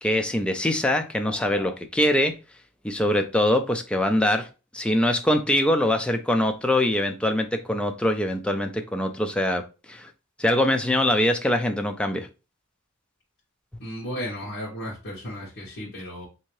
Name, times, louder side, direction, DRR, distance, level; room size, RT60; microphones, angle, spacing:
voice 1, 0.0-2.3 2.8-4.5 4.7-10.1 10.4-12.3, left 1 dB, 5° left, 0.3 m, -23 dB
voice 2, 13.8-16.3, equal, 50° left, 1.1 m, -34 dB
3.4 x 2.7 x 3.0 m
head